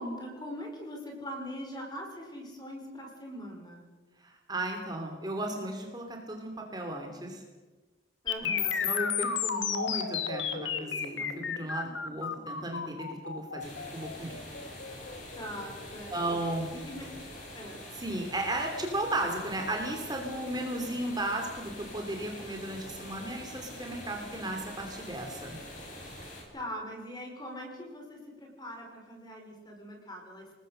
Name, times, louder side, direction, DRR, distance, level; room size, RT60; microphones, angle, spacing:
voice 1, 0.0-3.8 8.2-8.8 15.4-16.2 16.7-17.1 17.5-17.8 26.5-30.5, equal, 20° left, 2 dB, 5.3 m, -41 dB
voice 2, 4.2-7.4 8.4-8.5 8.8-14.4 16.1-16.7 17.9-25.6, right 1 dB, 20° right, 2 dB, 3.0 m, -35 dB
sound 1, 8.3-16.2, left 7 dB, 90° left, 2.5 m, -33 dB
sound 2, 13.6-26.4, left 1 dB, 45° left, 7.3 m, -45 dB
27.5 x 20.5 x 6.6 m, 1.3 s
head